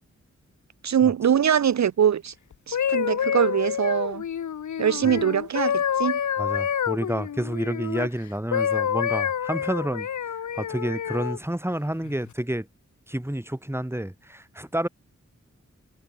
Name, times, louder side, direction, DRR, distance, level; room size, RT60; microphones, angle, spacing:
voice 1, 0.8-2.3 2.7-4.2 4.8-6.2, right 8 dB, 70° right, 0.5 m, -22 dB
sound 1, 2.5-8.1 8.5-11.4 12.0-12.3, left 8 dB, 80° left, 0.6 m, -27 dB
voice 2, 6.4-10.1 10.6-12.7 13.1-14.9, right 1 dB, 10° right, 3.0 m, -29 dB
wide cardioid pair, 50°, 29 cm